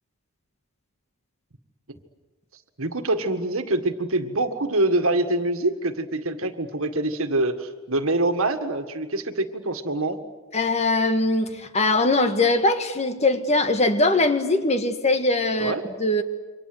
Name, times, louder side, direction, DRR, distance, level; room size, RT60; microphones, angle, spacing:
voice 1, 2.8-10.2 15.6-15.8, right 2 dB, 75° right, 8 dB, 1.9 m, -25 dB
voice 2, 10.5-15.7 16.0-16.2, left 2 dB, 30° left, 8 dB, 1.7 m, -21 dB
28.0 x 25.0 x 7.9 m, 1.3 s
head